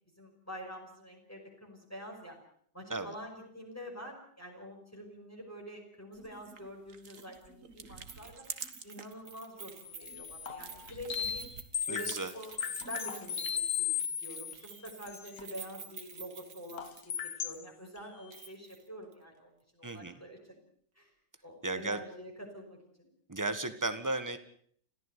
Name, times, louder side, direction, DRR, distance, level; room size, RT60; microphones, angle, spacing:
voice 1, 0.2-2.4 2.7-8.5 8.8-11.5 11.9-17.1 17.4-20.6 21.0-21.1 21.4-23.1, equal, 10° left, 0 dB, 5.5 m, -47 dB
sound 1, 6.1-9.2 9.6-13.8, right 5 dB, 45° right, 1.9 m, -48 dB
Keys jangling, 8.1-17.2 17.5-17.6 18.3-18.8 19.1-19.2, right 6 dB, 70° right, 2.5 m, -50 dB
sound 2, 9.9-11.4 11.7-14.6 14.9-15.4 16.8-17.6 18.0-18.1, left 9 dB, 55° left, 1.5 m, -36 dB
voice 2, 11.9-12.3 19.8-20.2 21.6-22.0 23.3-24.4, right 2 dB, 10° right, 10 dB, 1.5 m, -34 dB
29.5 x 14.5 x 8.3 m, 0.62 s
omnidirectional pair, 1.9 m